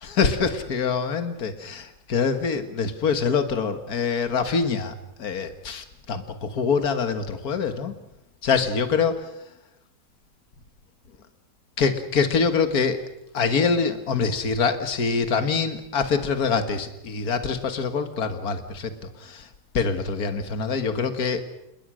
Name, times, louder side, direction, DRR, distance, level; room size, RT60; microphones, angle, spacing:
voice 1, 0.0-8.0 8.4-9.3 11.8-13.0 13.3-19.5 19.7-21.5, left 5 dB, 65° left, 9 dB, 2.2 m, -25 dB
28.5 x 20.5 x 6.4 m, 0.86 s
omnidirectional pair, 1.7 m